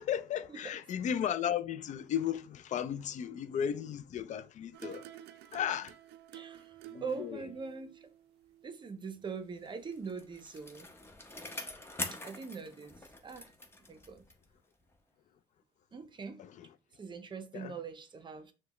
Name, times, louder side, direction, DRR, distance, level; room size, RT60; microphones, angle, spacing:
voice 1, 0.0-5.0 5.5-5.9 6.9-7.4 16.4-16.7 17.5-17.7, left 9 dB, 45° left, 0.4 m, -35 dB
sound 1, 4.7-9.8 10.1-10.2, right 12 dB, 75° right, 0.4 m, -53 dB
voice 2, 6.3-8.0 8.6-10.9 12.2-13.5 13.9-14.2 15.9-16.4 17.0-18.5, right 5 dB, 30° right, 0.6 m, -42 dB
Bicycle, 9.7-14.6 14.9-15.0, left 2 dB, 15° left, 0.7 m, -44 dB
5.9 x 2.2 x 2.9 m
cardioid pair, 110°, 17 cm